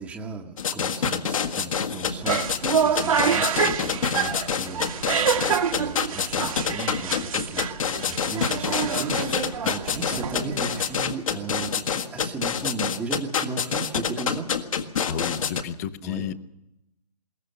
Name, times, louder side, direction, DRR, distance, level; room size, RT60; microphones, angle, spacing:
voice 1, 0.0-4.9 5.7-14.5 16.0-16.2, right 4 dB, 5° right, 0 dB, 1.1 m, -36 dB
sound 1, 0.6-15.6, left 7 dB, 55° left, 1.7 m, -26 dB
sound 2, 2.1-11.1, right 7 dB, 55° right, 1.4 m, -27 dB
voice 2, 15.0-16.3, left 8 dB, 25° left, 15 dB, 0.8 m, -31 dB
21.5 x 18.0 x 6.8 m, 0.86 s
hypercardioid pair, 150°, 21 cm